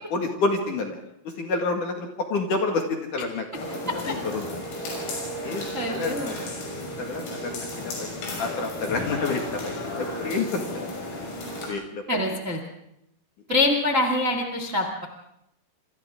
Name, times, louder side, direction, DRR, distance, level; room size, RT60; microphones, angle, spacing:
voice 1, 0.1-1.0 1.2-3.5 3.7-4.7 5.4-6.7 7.0-10.8 11.7-12.2, left 3 dB, 55° left, 2 dB, 2.6 m, -29 dB
sound 1, 3.5-11.7, left 1 dB, 75° left, 9.1 m, -33 dB
voice 2, 5.7-6.3 12.1-12.6 13.5-15.0, left 2 dB, 85° right, 3 dB, 0.7 m, -24 dB
28.0 x 25.5 x 3.7 m, 0.80 s
omnidirectional pair, 6.0 m